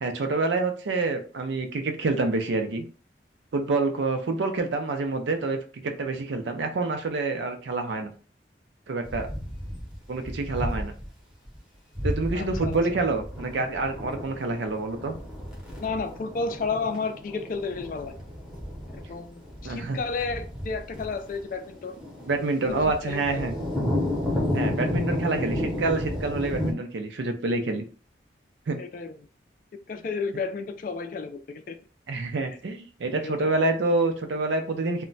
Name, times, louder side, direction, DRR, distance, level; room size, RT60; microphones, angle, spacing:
voice 1, 0.0-2.8 3.5-8.1 8.9-9.3 10.1-10.9 12.0-15.1 19.6-20.0 22.3-23.5 24.5-27.8 28.7-28.8 32.1-35.0, right 3 dB, 80° right, 5 dB, 0.5 m, -27 dB
sound 1, 9.0-11.1 11.4-11.6 11.9-26.7, left 1 dB, 5° right, 0.7 m, -32 dB
voice 2, 12.3-12.8 15.8-18.2 19.1-22.0 22.8-23.5 28.8-29.1 29.9-31.8 33.1-33.6, left 4 dB, 45° left, 8 dB, 0.3 m, -32 dB
2.1 x 2.1 x 3.8 m, 0.38 s
head